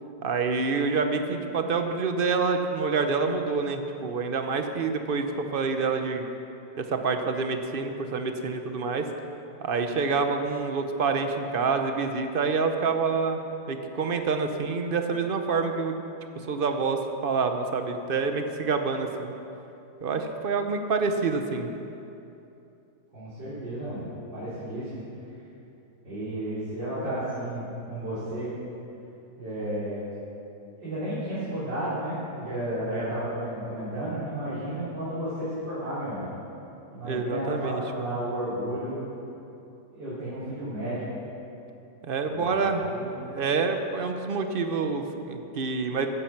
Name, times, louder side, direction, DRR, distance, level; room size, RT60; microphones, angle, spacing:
voice 1, 0.2-6.2 6.8-9.1 9.6-13.4 13.7-16.0 16.5-19.3 20.0-21.7 37.0-38.1 42.0-42.8 43.2-46.1, right 4 dB, 45° right, 6 dB, 0.7 m, -27 dB
voice 2, 23.1-24.1 24.3-25.0 26.0-28.5 29.4-30.0 30.8-36.3 36.9-39.0 39.9-41.0 42.2-43.2, right 1 dB, 80° right, -13 dB, 4.5 m, -32 dB
15.0 x 9.9 x 5.9 m, 2.8 s
omnidirectional pair, 2.0 m